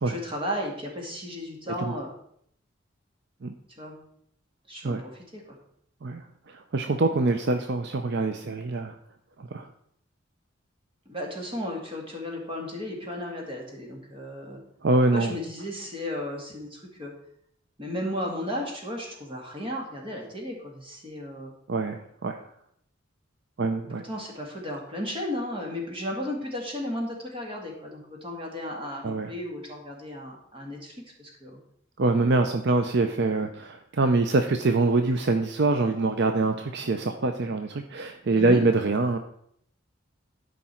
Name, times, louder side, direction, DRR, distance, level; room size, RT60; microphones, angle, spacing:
voice 1, 0.1-2.1 3.8-4.0 4.7-5.4 11.1-14.6 15.1-17.1 17.8-21.5 23.9-31.6 38.3-38.6, left 1 dB, 25° right, 0 dB, 2.2 m, -34 dB
voice 2, 6.0-8.9 9.4-9.7 14.8-15.3 21.7-22.4 23.6-24.0 29.0-29.3 32.0-39.2, right 3 dB, 60° right, 7 dB, 0.6 m, -24 dB
12.5 x 5.2 x 4.4 m, 0.69 s
head